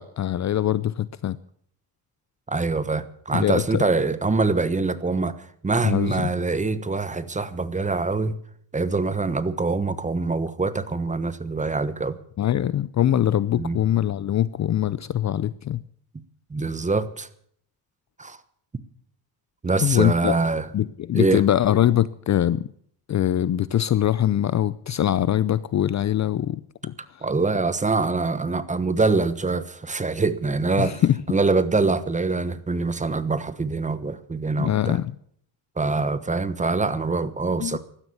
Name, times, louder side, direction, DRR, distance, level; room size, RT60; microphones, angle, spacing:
voice 1, 0.0-1.4 3.3-3.8 5.8-6.3 12.4-15.8 19.8-20.4 20.7-22.7 23.1-27.2 30.8-31.2 34.6-35.1 37.6-37.8, left 11 dB, 40° left, 18 dB, 0.5 m, -23 dB
voice 2, 2.5-5.3 5.6-8.4 8.7-12.2 13.6-13.8 16.5-17.3 18.2-18.4 19.6-20.7 21.1-21.4 27.2-35.0 35.8-37.8, right 3 dB, 15° right, 14 dB, 1.2 m, -24 dB
16.0 x 12.5 x 7.0 m, 0.62 s
cardioid pair, 130°, 45 cm